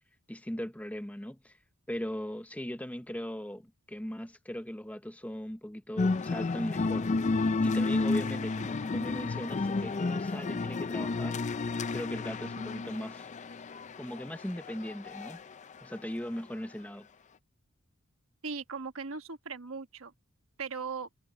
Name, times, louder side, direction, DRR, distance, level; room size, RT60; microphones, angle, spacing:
voice 1, 0.3-1.6 1.9-7.1 7.6-11.4 11.9-13.3 14.0-15.4 15.8-17.1, equal, 5° left, 0.8 m, -39 dB
sound 1, 6.0-15.4, left 3 dB, 35° left, 0.5 m, -31 dB
voice 2, 18.4-20.1 20.6-21.1, right 5 dB, 70° right, 1.4 m, -38 dB
head